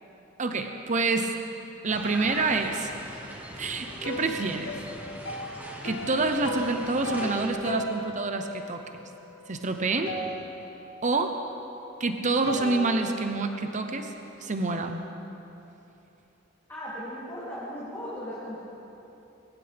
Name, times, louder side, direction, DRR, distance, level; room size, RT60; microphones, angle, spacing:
voice 1, 0.4-1.3 1.8-2.9 3.6-4.7 5.8-8.8 9.5-10.1 11.0-11.4 12.0-14.1 14.4-15.0, right 3 dB, 40° right, 6 dB, 0.8 m, -27 dB
sound 1, 1.9-7.5, equal, 10° right, 1.4 m, -41 dB
sound 2, 3.8-9.7 10.1-11.2 12.5-14.7, equal, 85° left, 1.6 m, -37 dB
voice 2, 16.7-18.6, equal, 10° left, -11 dB, 3.1 m, -37 dB
22.0 x 16.5 x 3.5 m, 3.0 s
head